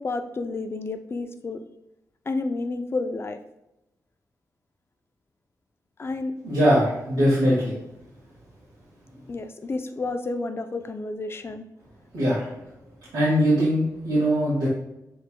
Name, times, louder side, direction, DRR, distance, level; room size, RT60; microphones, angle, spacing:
voice 1, 0.0-1.6 2.3-3.4 6.0-6.3 9.3-11.7, left 3 dB, 35° left, 7 dB, 0.4 m, -30 dB
voice 2, 6.4-7.8 12.1-12.7 13.1-14.7, equal, 80° right, -9 dB, 1.7 m, -21 dB
6.7 x 3.4 x 2.2 m, 0.88 s
wide cardioid pair, 95°, 7 cm